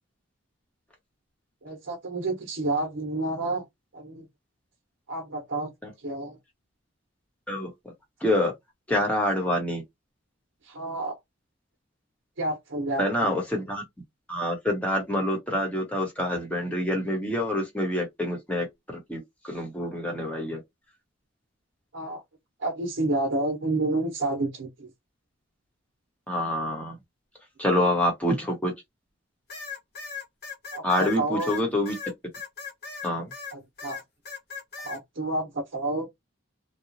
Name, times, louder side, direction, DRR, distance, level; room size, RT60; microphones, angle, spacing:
voice 1, 1.6-3.6 3.9-4.3 5.1-5.7 6.0-6.4 10.6-11.2 12.4-13.3 21.9-22.2 22.6-24.9 30.7-31.5 33.5-34.0 34.8-36.1, right 2 dB, 60° right, 0.8 m, -29 dB
voice 2, 8.2-8.5 8.9-9.8 13.0-13.8 14.3-19.2 19.4-20.6 26.3-26.9 27.6-28.7 30.8-31.9 33.0-33.3, left 1 dB, 5° left, 1.1 m, -26 dB
sound 1, 29.5-33.5 33.8-35.0, left 5 dB, 55° left, 1.3 m, -38 dB
2.9 x 2.3 x 2.6 m
head